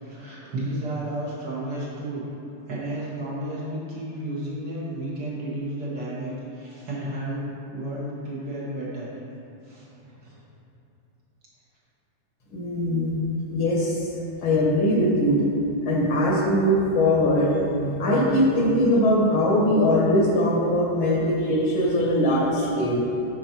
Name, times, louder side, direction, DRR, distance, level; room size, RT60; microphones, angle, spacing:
voice 1, 0.0-2.3 2.7-7.5 7.7-9.1 9.6-10.4, right 1 dB, 55° right, -7 dB, 2.1 m, -32 dB
voice 2, 12.5-13.2 13.5-15.4 15.8-23.0, left 1 dB, 75° left, -3 dB, 2.1 m, -21 dB
9.6 x 4.7 x 4.4 m, 2.9 s
omnidirectional pair, 2.3 m